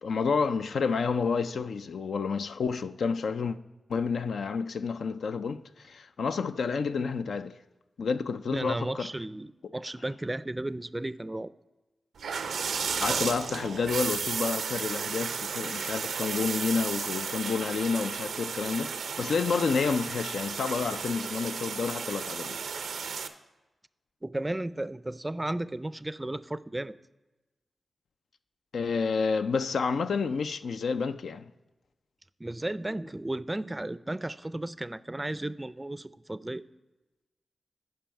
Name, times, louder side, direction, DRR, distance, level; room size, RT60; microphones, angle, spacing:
voice 1, 0.0-3.6 3.9-7.6 8.0-9.1 13.0-22.6 28.7-31.4, left 5 dB, 80° left, 0.3 m, -29 dB
voice 2, 8.5-11.5 24.2-27.0 32.4-36.6, right 1 dB, 25° right, 0.4 m, -34 dB
sound 1, 12.2-23.3, right 6 dB, 90° right, 0.5 m, -33 dB
10.0 x 5.3 x 4.5 m
cardioid pair, 40°, 0 cm